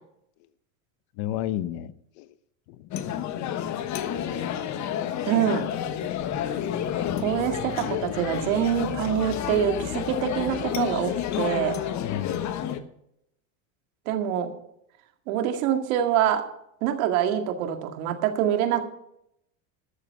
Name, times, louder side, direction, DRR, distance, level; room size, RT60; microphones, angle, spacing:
voice 1, 1.2-2.3 2.7-3.3 12.0-12.4, left 12 dB, 60° left, 15 dB, 0.9 m, -33 dB
sound 1, 2.9-12.8, left 10 dB, 40° left, 1.2 m, -30 dB
voice 2, 5.2-5.7 7.2-11.8 14.1-14.5 15.3-16.4 16.8-18.8, right 10 dB, 75° right, 6 dB, 2.1 m, -25 dB
13.0 x 7.2 x 7.0 m, 0.77 s
supercardioid pair, 120°, 41 cm